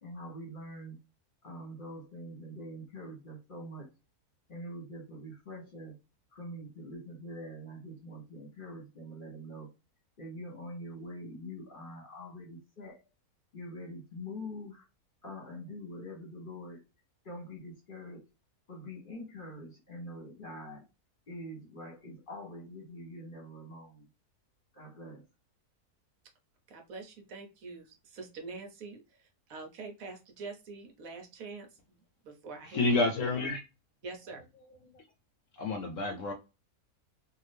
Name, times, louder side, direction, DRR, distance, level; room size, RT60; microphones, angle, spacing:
voice 1, 0.0-1.0 1.4-3.9 4.5-6.0 6.3-9.7 10.2-13.0 13.5-14.8 15.2-16.8 17.2-18.3 18.7-20.8 21.3-24.1 24.7-25.2, equal, 40° left, 1.0 m, -44 dB
voice 2, 26.7-32.0 32.2-32.9 34.0-34.4, right 4 dB, 65° right, 1.1 m, -45 dB
voice 3, 32.6-33.6 34.9-35.0 35.5-36.3, left 2 dB, 70° left, 0.8 m, -29 dB
2.7 x 2.5 x 3.2 m
omnidirectional pair, 1.6 m